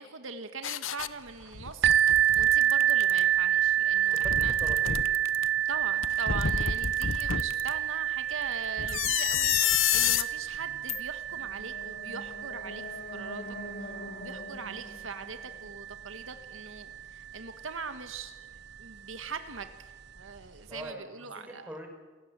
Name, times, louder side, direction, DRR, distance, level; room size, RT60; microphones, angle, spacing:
voice 1, 0.0-4.5 5.7-21.7, right 4 dB, 80° right, 8 dB, 1.7 m, -42 dB
sound 1, 0.6-1.1 1.5-3.2 4.0-5.5 6.0-7.7 8.8-10.3 10.9-11.0, left 9 dB, 75° left, 0.8 m, -29 dB
sound 2, 1.8-17.4 18.1-18.2 18.8-18.9, right 11 dB, 55° right, 0.7 m, -29 dB
voice 2, 4.2-5.1 10.5-10.9 20.7-21.9, right 1 dB, 10° right, 2 dB, 5.1 m, -44 dB
sound 3, 11.3-16.4, left 1 dB, 50° left, 3.6 m, -44 dB
28.5 x 17.5 x 8.2 m, 1.3 s
head